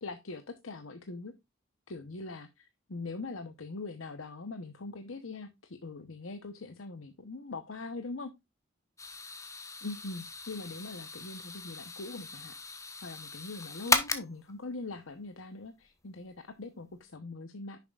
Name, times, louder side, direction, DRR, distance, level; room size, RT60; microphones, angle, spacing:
voice 1, 0.0-1.3 1.9-8.3 9.8-12.5 13.0-17.8, left 3 dB, 90° left, 8 dB, 1.0 m, -42 dB
sound 1, 9.0-14.5, left 3 dB, 15° left, 1.1 m, -35 dB
10.5 x 7.1 x 2.4 m, 0.21 s
head